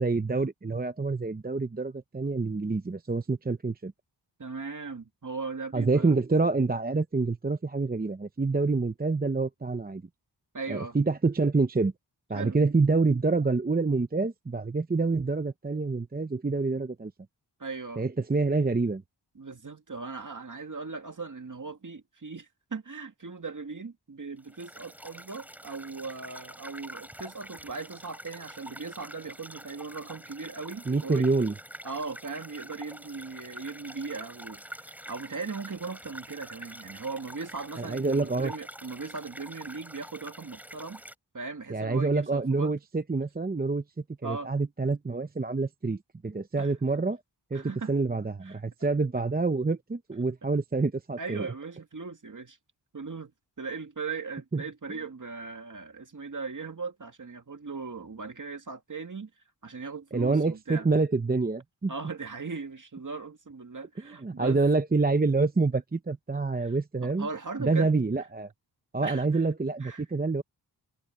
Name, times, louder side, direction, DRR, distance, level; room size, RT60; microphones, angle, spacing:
voice 1, 0.0-3.9 5.7-10.0 10.7-11.9 12.3-17.1 18.0-19.0 30.9-31.5 37.8-38.5 41.7-43.8 44.2-47.2 47.5-51.4 54.5-54.6 60.1-61.9 64.0-67.3 67.6-68.5 68.9-70.4, right 3 dB, 20° right, 0.8 m, -27 dB
voice 2, 4.4-6.1 10.5-11.0 12.3-12.6 17.6-18.0 19.4-31.3 31.8-41.0 41.3-42.7 44.2-44.5 46.6-46.7 47.5-47.9 48.4-48.6 51.2-52.6 52.9-53.3 53.6-59.3 59.6-60.9 61.9-64.6 66.6-66.7 67.0-67.9 69.0-69.5 69.8-70.0, right 4 dB, 45° right, 2.3 m, -38 dB
sound 1, 24.4-41.1, equal, 5° right, 3.7 m, -46 dB
wide cardioid pair, 75°, 43 cm